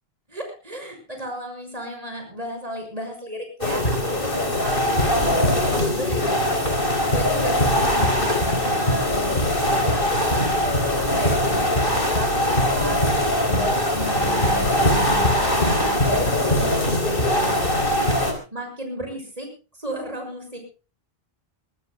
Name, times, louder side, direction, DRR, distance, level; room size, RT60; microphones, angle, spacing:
voice 1, 0.3-6.6 7.1-13.1 13.5-18.1 18.5-19.5 19.8-20.6, equal, 35° right, 4 dB, 6.4 m, -34 dB
sound 1, 3.6-18.3, left 1 dB, 60° left, 4.2 m, -21 dB
23.0 x 21.5 x 2.2 m, 0.34 s
omnidirectional pair, 1.0 m